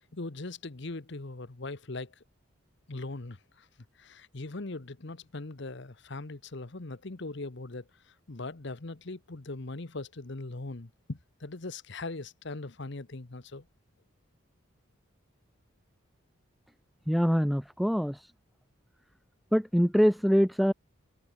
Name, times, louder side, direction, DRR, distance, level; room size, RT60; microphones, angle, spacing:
voice 1, 0.1-2.1 2.9-3.7 4.0-13.7, left 2 dB, 55° left, 1.1 m, -40 dB
voice 2, 17.1-18.3 19.5-20.7, equal, ahead, 0.4 m, -24 dB
head